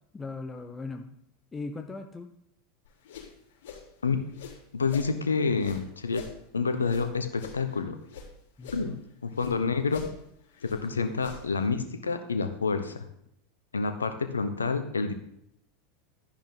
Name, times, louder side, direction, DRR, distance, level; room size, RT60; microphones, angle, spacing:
voice 1, 0.1-1.2 1.5-2.3 8.6-9.0 10.9-11.1, left 3 dB, 20° left, 6 dB, 0.9 m, -39 dB
sound 1, 2.8-5.1 5.5-8.3 8.6-9.6 9.8-11.7, left 6 dB, 60° left, 3.8 m, -45 dB
voice 2, 4.7-6.3 6.5-8.0 8.7-10.1 10.6-13.1 13.7-15.1, left 4 dB, 80° left, 8 dB, 1.0 m, -28 dB
12.0 x 10.5 x 3.9 m, 0.73 s
figure-of-eight pair, 85°, 0 cm